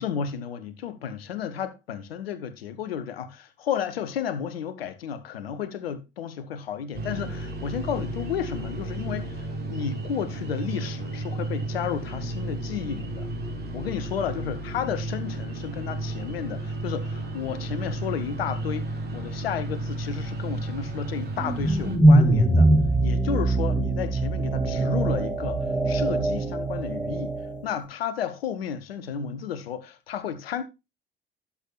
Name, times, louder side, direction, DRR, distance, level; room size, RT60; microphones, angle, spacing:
voice 1, 0.0-13.3 13.7-22.7 23.0-27.4 27.6-30.6, left 8 dB, 75° left, 1.1 m, -32 dB
sound 1, 6.9-22.0, right 2 dB, 35° right, 3.7 m, -33 dB
sound 2, 21.3-27.7, right 2 dB, 5° right, 2.4 m, -22 dB
11.5 x 7.3 x 2.3 m
figure-of-eight pair, 50°, 30 cm